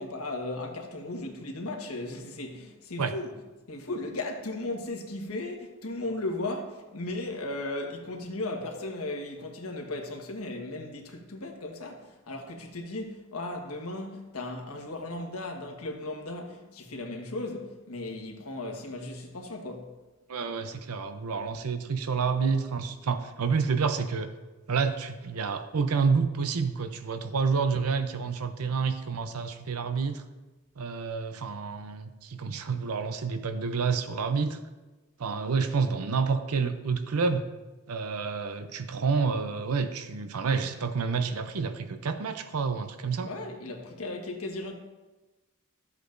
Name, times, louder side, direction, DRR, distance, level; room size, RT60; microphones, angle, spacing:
voice 1, 0.0-3.4 3.7-20.0 43.2-44.7, left 2 dB, 80° left, 1.4 m, -36 dB
voice 2, 20.3-24.3 24.7-30.2 30.8-34.6 35.2-37.5 37.9-43.3, right 5 dB, 85° right, 0.6 m, -29 dB
13.0 x 8.0 x 2.6 m
head